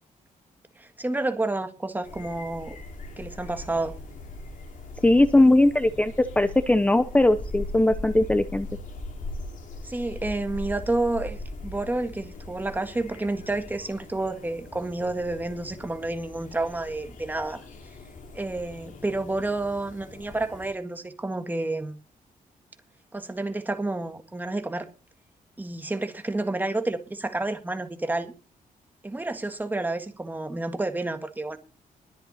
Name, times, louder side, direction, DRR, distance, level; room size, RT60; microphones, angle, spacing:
voice 1, 0.8-2.8 3.2-4.0 9.8-17.6 18.3-22.0 23.1-24.8 25.6-28.3 29.0-31.6, right 2 dB, 10° right, 1.8 m, -30 dB
sound 1, 2.0-20.7, left 2 dB, 65° left, 4.8 m, -40 dB
voice 2, 5.0-8.7, left 1 dB, 10° left, 0.7 m, -20 dB
21.5 x 8.1 x 4.2 m
wide cardioid pair, 135°, 15 cm